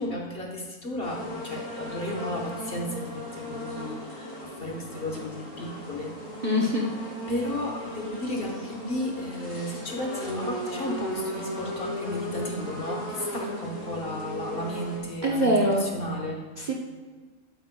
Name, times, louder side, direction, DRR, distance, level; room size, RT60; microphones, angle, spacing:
voice 1, 0.0-6.1 7.3-16.4, left 1 dB, 40° left, 0 dB, 1.2 m, -33 dB
sound 1, 1.0-15.0, equal, 60° left, 3.1 m, -37 dB
voice 2, 6.4-6.9 15.2-15.9 16.6-16.7, equal, 40° right, -2 dB, 0.8 m, -23 dB
12.0 x 8.3 x 2.2 m, 1.4 s
omnidirectional pair, 1.6 m